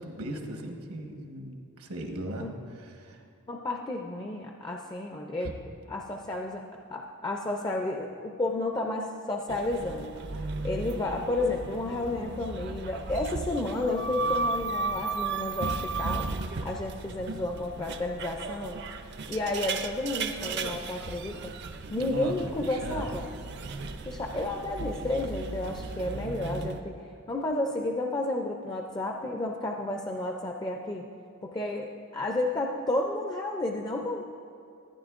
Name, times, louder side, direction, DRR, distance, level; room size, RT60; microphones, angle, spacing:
voice 1, 0.0-2.5 2.7-3.2 5.4-5.5 22.0-23.0, right 1 dB, 80° right, 3 dB, 1.1 m, -37 dB
voice 2, 3.5-5.5 5.9-6.6 6.9-16.3 16.6-18.8 19.3-21.5 21.9-23.3 24.1-26.9 27.3-31.1 31.4-34.2, left 2 dB, 20° left, 2 dB, 0.4 m, -32 dB
sound 1, 9.5-26.8, right 4 dB, 50° right, 0.5 m, -35 dB
14.5 x 9.6 x 2.4 m, 2.6 s
head